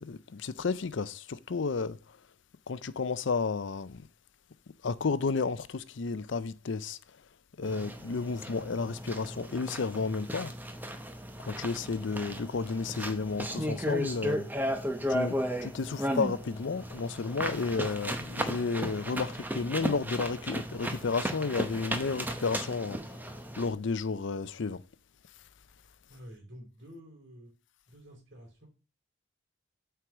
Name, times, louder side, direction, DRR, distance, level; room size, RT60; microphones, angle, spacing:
voice 1, 0.0-2.0 2.7-4.0 4.8-7.0 7.6-10.5 11.5-14.5 15.1-23.0 23.6-24.8, left 4 dB, 60° left, 0.5 m, -32 dB
sound 1, 7.6-23.7, equal, 10° right, 0.8 m, -35 dB
voice 2, 26.1-27.5 27.9-28.7, equal, 55° right, 3.2 m, -50 dB
8.0 x 4.7 x 6.0 m
head